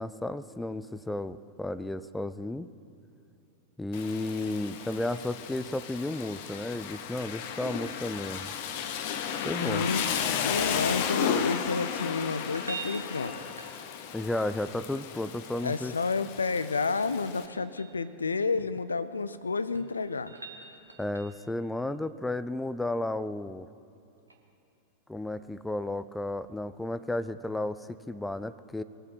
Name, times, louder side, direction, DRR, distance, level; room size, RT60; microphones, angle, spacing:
voice 1, 0.0-2.7 3.8-8.5 9.4-9.8 14.1-15.9 21.0-23.7 25.1-28.8, left 2 dB, 5° left, 14 dB, 0.4 m, -33 dB
Rain, 3.9-17.5, left 8 dB, 50° left, 0.9 m, -34 dB
voice 2, 9.6-10.1 10.4-13.5 15.6-20.4, left 4 dB, 75° left, 14 dB, 0.5 m, -30 dB
sound 1, 9.7-10.9 12.4-14.2 16.4-18.0 19.4-21.5 24.3-24.4, right 5 dB, 80° right, 1.3 m, -45 dB
22.0 x 8.0 x 5.7 m, 2.8 s
figure-of-eight pair, 90°, 0 cm